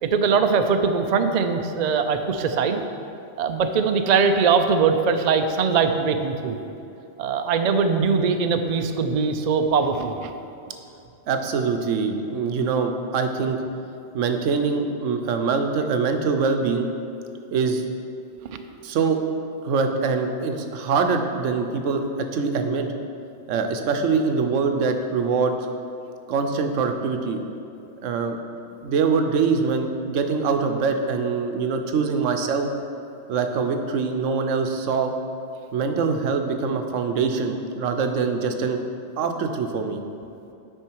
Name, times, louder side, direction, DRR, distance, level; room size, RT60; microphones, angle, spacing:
voice 1, 0.0-2.8 3.4-6.6 7.2-10.3 18.4-18.6, right 5 dB, 60° right, 7 dB, 0.4 m, -21 dB
voice 2, 11.3-13.6 14.1-16.9 17.5-17.8 18.8-19.2 19.6-22.9 23.5-25.6 26.3-27.4 28.0-28.4 28.8-32.7 33.3-35.1 35.7-38.8 39.2-40.0, right 5 dB, 80° right, 6 dB, 1.0 m, -23 dB
8.8 x 5.4 x 4.6 m, 2.8 s
omnidirectional pair, 1.3 m